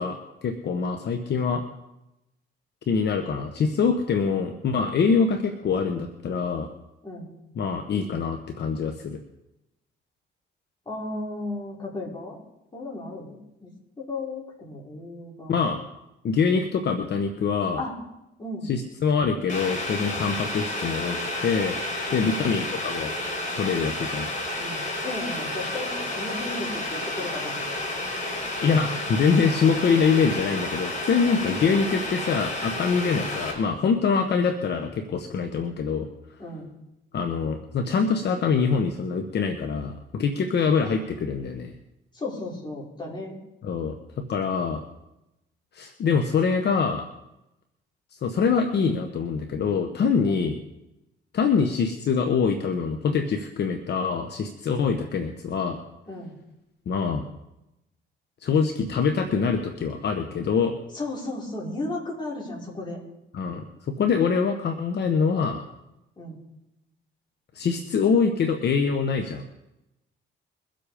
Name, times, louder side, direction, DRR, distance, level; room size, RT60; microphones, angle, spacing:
voice 1, 0.0-1.6 2.9-6.7 7.6-9.2 15.5-15.8 16.2-17.8 18.6-21.8 22.1-23.1 23.6-24.3 28.6-36.1 37.1-41.7 43.6-44.0 44.3-44.8 45.7-47.0 48.2-50.6 51.3-55.8 56.9-57.3 58.4-60.7 63.3-65.6 67.5-69.4, left 5 dB, 60° left, 6 dB, 1.2 m, -24 dB
voice 2, 10.9-12.4 12.7-13.7 14.0-15.6 17.8-18.0 18.4-18.7 22.1-22.6 24.6-27.6 31.4-31.5 32.8-33.3 36.4-36.7 42.1-43.4 50.2-50.4 56.1-56.3 60.9-63.0 66.2-66.4, left 2 dB, 20° left, -3 dB, 5.3 m, -35 dB
Boiling, 19.5-33.5, left 1 dB, 40° left, 4.7 m, -31 dB
22.5 x 7.8 x 5.1 m, 0.90 s
cardioid pair, 90°, 20 cm